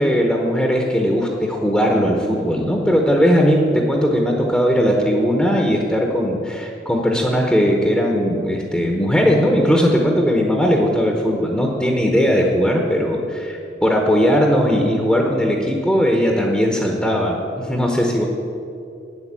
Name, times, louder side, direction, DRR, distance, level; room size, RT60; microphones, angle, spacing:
voice 1, 0.0-18.2, equal, 5° left, 0 dB, 0.9 m, -18 dB
9.1 x 8.1 x 7.5 m, 2.7 s
head